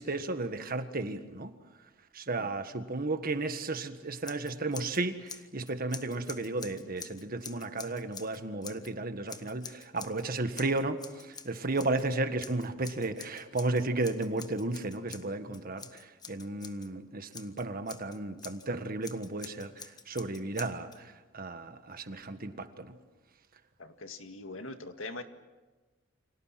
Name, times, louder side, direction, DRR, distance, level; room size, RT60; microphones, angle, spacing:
voice 1, 0.0-1.5 2.1-23.0, right 2 dB, 50° right, 8 dB, 1.6 m, -34 dB
Scissors, 4.2-5.0 5.3-8.9 9.3-10.2 10.5-12.0 12.4-16.9 17.3-18.7 19.0-21.0, left 5 dB, 20° left, 1.3 m, -47 dB
voice 2, 23.8-25.2, left 2 dB, 80° left, 7 dB, 2.0 m, -42 dB
29.5 x 26.0 x 5.9 m, 1.2 s
head